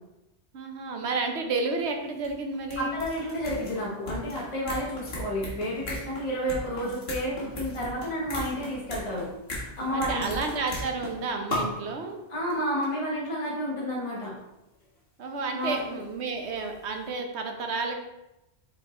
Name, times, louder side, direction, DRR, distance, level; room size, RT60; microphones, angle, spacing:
voice 1, 0.5-3.0 9.9-12.2 15.2-17.9, right 3 dB, 85° right, 4 dB, 1.2 m, -31 dB
sound 1, 1.8-1.9 2.1-11.2 11.5-11.9 12.5-12.6 12.8-12.9 14.2-14.3 15.4-16.8 17.0-17.1, left 1 dB, 65° left, 1.8 m, -37 dB
voice 2, 2.8-9.3 9.8-10.3 12.3-14.3 15.5-16.0, equal, 30° left, -4 dB, 1.1 m, -31 dB
5.1 x 4.5 x 4.2 m, 0.95 s
omnidirectional pair, 1.1 m